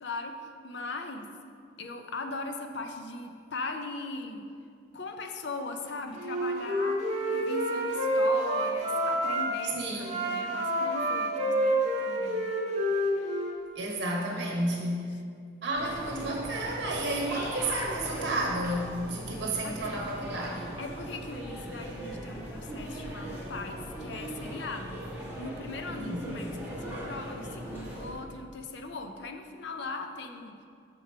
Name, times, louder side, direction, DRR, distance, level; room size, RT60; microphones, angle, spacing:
voice 1, 0.0-1.3 1.8-4.5 4.9-9.9 10.1-12.5 13.8-13.9 14.4-14.6 19.6-19.7 20.8-25.0 25.4-30.6, left 3 dB, 65° left, 6 dB, 0.5 m, -39 dB
Wind instrument woodwind instrument, 6.2-9.4 10.0-13.6, equal, 35° right, 1.0 m, -28 dB
voice 2, 9.8-10.2 13.7-15.2 15.6-20.7 25.9-26.3, right 1 dB, 60° right, -1 dB, 1.1 m, -32 dB
sound 1, 15.7-28.1, equal, 10° right, 1.1 m, -39 dB
6.0 x 4.9 x 4.4 m, 2.2 s
head